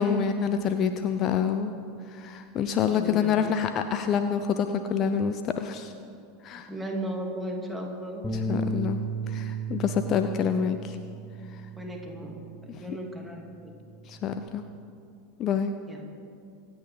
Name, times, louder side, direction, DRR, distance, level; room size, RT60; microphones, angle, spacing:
voice 1, 0.0-1.7 2.1-5.9 6.4-6.7 8.5-11.0 12.7-13.0 14.1-14.7 15.4-15.7, left 7 dB, 35° left, 8 dB, 0.6 m, -27 dB
voice 2, 2.8-3.5 6.5-8.2 11.8-13.7 15.9-16.0, equal, 5° right, 0 dB, 2.3 m, -36 dB
Bass guitar, 8.2-12.7 13.1-14.5, right 2 dB, 15° left, 1.8 m, -35 dB
25.0 x 8.7 x 4.0 m, 2.4 s
figure-of-eight pair, 80°, 0 cm